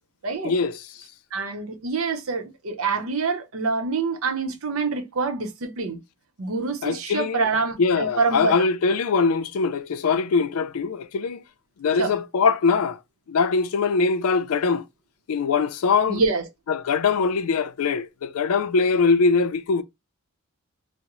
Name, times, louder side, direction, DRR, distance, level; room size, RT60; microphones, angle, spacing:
voice 1, 0.4-0.9 6.8-7.5 7.8-11.4 11.8-13.0 13.3-14.8 15.3-16.2 16.7-19.8, left 4 dB, 85° left, 0.4 m, -22 dB
voice 2, 1.3-6.0 6.4-8.5 12.0-12.1 16.1-16.5, right 4 dB, 75° right, 0.7 m, -26 dB
3.6 x 2.0 x 3.0 m
head